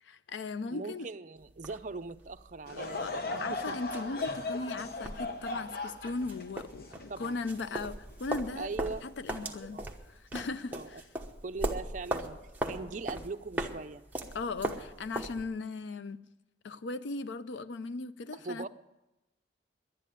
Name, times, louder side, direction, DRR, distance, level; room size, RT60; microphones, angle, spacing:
voice 1, 0.1-1.1 2.7-3.1 3.4-8.7 9.0-9.8 10.1-11.1 14.3-16.2 16.6-18.7, left 3 dB, 80° left, 14 dB, 0.5 m, -38 dB
voice 2, 0.7-3.8 7.1-7.4 8.6-9.1 9.4-9.9 10.7-11.0 11.4-12.4 12.6-14.0 18.3-18.7, right 3 dB, 40° right, 8 dB, 0.5 m, -40 dB
sound 1, 1.4-15.4, right 1 dB, 10° right, 1.1 m, -39 dB
Laughter / Crowd, 2.7-8.1 8.7-8.8 9.6-9.8, left 3 dB, 55° left, 0.9 m, -38 dB
11.0 x 9.9 x 9.9 m, 0.97 s
head